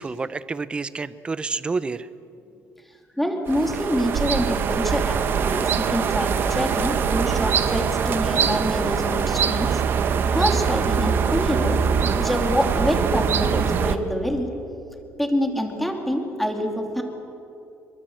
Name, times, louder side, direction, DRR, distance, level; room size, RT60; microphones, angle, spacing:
voice 1, 0.0-2.1, right 4 dB, 20° right, 15 dB, 0.7 m, -29 dB
voice 2, 3.2-9.8 10.3-11.8 12.2-14.5 15.2-17.0, equal, ahead, 3 dB, 2.7 m, -26 dB
sound 1, 3.5-14.0, right 6 dB, 40° right, 1.1 m, -23 dB
25.5 x 23.5 x 7.8 m, 2.8 s
cardioid pair, 155°, 5 cm